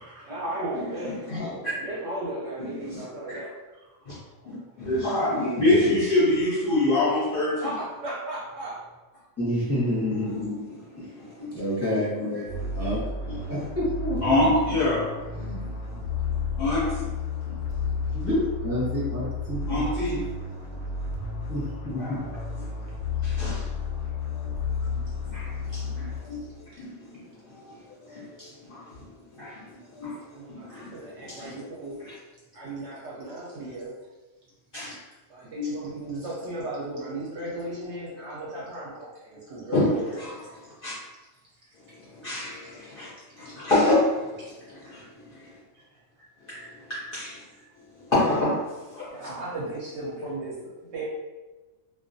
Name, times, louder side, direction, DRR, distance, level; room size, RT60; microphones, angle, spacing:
voice 1, 0.0-1.2 1.8-4.1 7.6-8.8 25.4-25.7 26.7-26.8 30.3-32.0 32.5-33.9 34.9-40.1 42.9-43.0 43.3-43.7 44.8-45.1 45.7-45.9 46.2-46.3 49.1-51.0, right 2 dB, 65° right, -5 dB, 0.8 m, -36 dB
voice 2, 0.7-1.4 2.6-3.4 4.1-4.2 4.5-7.7 9.6-9.8 10.2-11.6 11.9-12.9 13.3-13.5 14.2-16.0 16.3-17.1 17.4-18.2 19.7-20.2 20.7-20.8 21.3-21.4 22.0-22.2 22.6-22.9 23.2-24.1 24.4-26.5 26.8-30.2 30.5-32.2 34.7-35.0 35.5-35.8 39.7-40.5 40.8-40.9 41.8-43.1 43.4-44.4 44.7-45.6 46.5-47.4 47.9-49.3, left 2 dB, 60° left, -9 dB, 0.6 m, -28 dB
voice 3, 1.3-1.8 5.6-5.9 9.4-10.3 11.0-11.1 11.5-12.2 12.7-13.0 13.5-14.4 15.4-15.6 18.1-19.9 20.1-20.2 21.5-22.3, left 1 dB, 15° left, -10 dB, 0.6 m, -29 dB
sound 1, 12.5-26.6, left 4 dB, 90° left, 1.0 m, -32 dB
2.3 x 2.1 x 2.5 m, 1.2 s
omnidirectional pair, 1.5 m